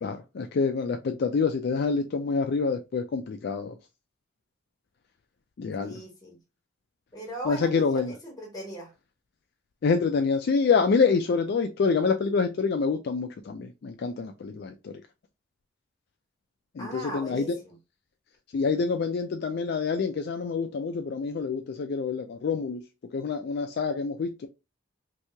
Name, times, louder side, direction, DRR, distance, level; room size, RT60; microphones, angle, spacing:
voice 1, 0.0-3.7 5.6-6.0 7.5-8.1 9.8-14.9 16.8-17.4 18.5-22.8 23.1-24.5, left 5 dB, 50° left, 0.3 m, -26 dB
voice 2, 5.8-6.4 7.1-8.9 16.8-17.8, right 1 dB, 20° left, 1.3 m, -39 dB
3.0 x 2.7 x 3.3 m
head